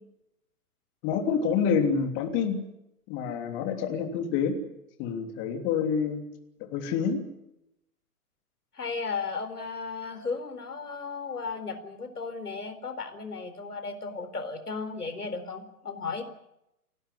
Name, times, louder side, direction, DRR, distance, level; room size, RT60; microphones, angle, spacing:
voice 1, 1.0-2.6 3.1-4.6 5.0-6.3 6.6-7.2, left 6 dB, 25° left, 6 dB, 3.1 m, -27 dB
voice 2, 8.7-16.2, left 4 dB, 75° left, 8 dB, 4.2 m, -35 dB
29.0 x 12.0 x 9.8 m, 0.84 s
figure-of-eight pair, 125°, 46 cm